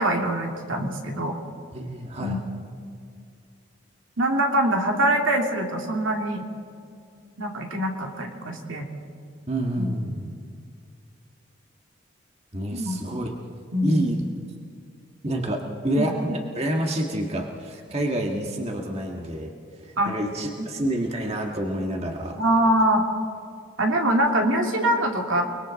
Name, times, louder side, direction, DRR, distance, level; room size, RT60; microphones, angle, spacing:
voice 1, 0.0-1.3 2.2-2.4 4.2-6.5 7.4-8.9 9.8-10.2 12.7-13.0 13.7-14.1 16.0-16.1 20.0-20.1 20.6-20.8 22.4-23.0 23.8-25.4, right 1 dB, 80° right, 2 dB, 2.6 m, -24 dB
voice 2, 1.7-2.4 9.5-10.3 12.5-13.3 13.8-14.2 15.2-15.6 15.8-19.5 19.8-22.4, right 1 dB, 30° right, 1 dB, 1.7 m, -28 dB
30.0 x 21.5 x 4.1 m, 2.3 s
head